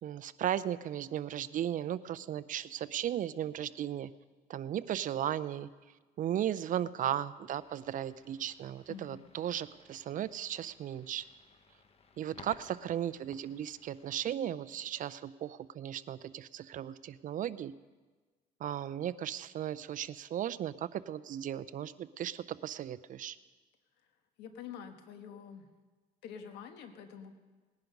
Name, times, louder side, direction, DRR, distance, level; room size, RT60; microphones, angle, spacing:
voice 1, 0.0-4.1 4.5-5.7 6.2-11.2 12.2-17.7 18.6-23.4, right 10 dB, 50° right, 16 dB, 0.5 m, -36 dB
sound 1, 7.5-14.2, left 5 dB, 35° left, 1.1 m, -60 dB
voice 2, 8.9-9.3 24.4-25.7 26.2-27.3, left 7 dB, 90° left, 7 dB, 1.5 m, -47 dB
19.0 x 10.5 x 5.3 m, 1.3 s
cardioid pair, 110°, 17 cm